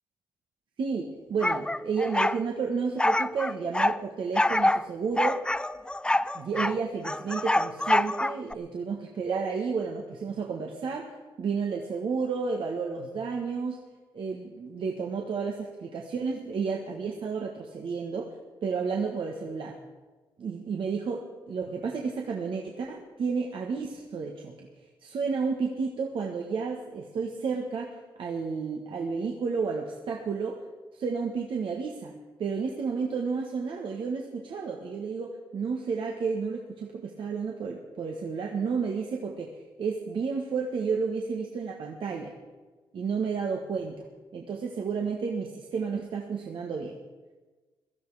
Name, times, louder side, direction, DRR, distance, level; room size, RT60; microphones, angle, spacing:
voice 1, 0.8-5.4 6.3-11.1 11.4-13.9 14.1-18.3 18.6-19.8 20.4-30.6 30.9-32.1 32.4-39.5 39.8-42.3 42.9-44.0 44.3-47.0, right 5 dB, 65° right, 1 dB, 1.6 m, -31 dB
sound 1, 1.4-2.4 3.0-4.0 4.4-4.8 5.2-6.8 7.0-8.5, left 1 dB, 10° left, 0.4 m, -25 dB
17.0 x 12.5 x 4.9 m, 1.3 s
supercardioid pair, 60°, 9 cm